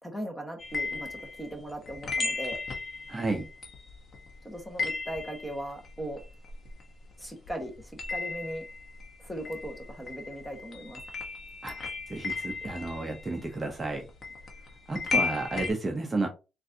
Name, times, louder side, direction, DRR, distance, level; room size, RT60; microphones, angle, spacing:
voice 1, 0.0-2.6 4.4-6.2 7.2-8.6 9.2-11.0, right 1 dB, 5° left, 3 dB, 1.1 m, -38 dB
sound 1, 0.6-7.2 7.5-15.7, left 4 dB, 45° left, 1.0 m, -36 dB
voice 2, 3.1-3.4 11.6-14.0 14.9-16.3, right 3 dB, 25° right, 3 dB, 0.7 m, -32 dB
3.8 x 2.5 x 2.7 m, 0.29 s
cardioid pair, 90°, 0 cm